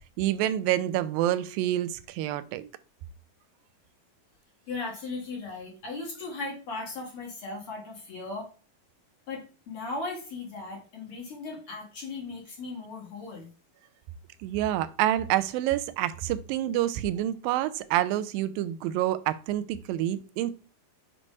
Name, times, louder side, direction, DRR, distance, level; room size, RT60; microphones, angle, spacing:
voice 1, 0.2-2.7 14.4-20.5, right 13 dB, 85° right, 2.3 m, -27 dB
voice 2, 4.7-8.5 9.3-13.5, left 3 dB, 45° left, 2.3 m, -37 dB
7.5 x 3.2 x 5.2 m
omnidirectional pair, 4.0 m